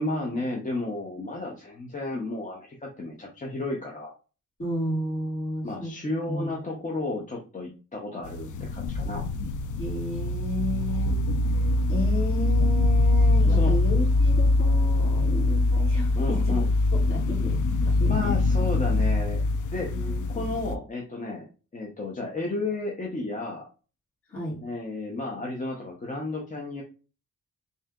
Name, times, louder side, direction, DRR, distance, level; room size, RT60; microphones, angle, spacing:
voice 1, 0.0-4.1 5.6-9.3 13.5-13.8 16.2-16.6 18.0-19.9 20.3-21.5 21.7-23.7 24.6-26.8, left 2 dB, 25° left, -1 dB, 0.6 m, -32 dB
voice 2, 4.6-6.0 6.3-6.5 9.8-11.4 11.9-16.6 16.9-18.3 19.9-20.6 24.3-24.7, left 1 dB, 40° left, -4 dB, 2.0 m, -33 dB
sound 1, 8.2-20.8, left 2 dB, 70° left, 0.4 m, -23 dB
3.3 x 2.7 x 3.6 m, 0.34 s
wide cardioid pair, 145°, 32 cm